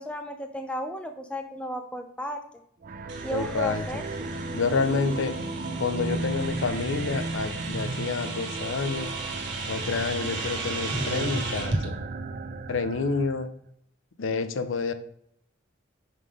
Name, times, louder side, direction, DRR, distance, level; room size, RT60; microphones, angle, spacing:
voice 1, 0.0-2.4 3.2-4.3, equal, 5° left, 5 dB, 0.5 m, -34 dB
sound 1, 2.8-13.5, right 2 dB, 45° right, 0.5 m, -35 dB
sound 2, 3.1-11.8, right 3 dB, 60° right, 1.4 m, -35 dB
voice 2, 3.3-3.8 4.5-5.3 5.8-9.1 9.7-12.0 12.7-13.5 14.2-14.9, left 4 dB, 85° left, 10 dB, 0.6 m, -28 dB
5.7 x 3.7 x 4.8 m, 0.68 s
head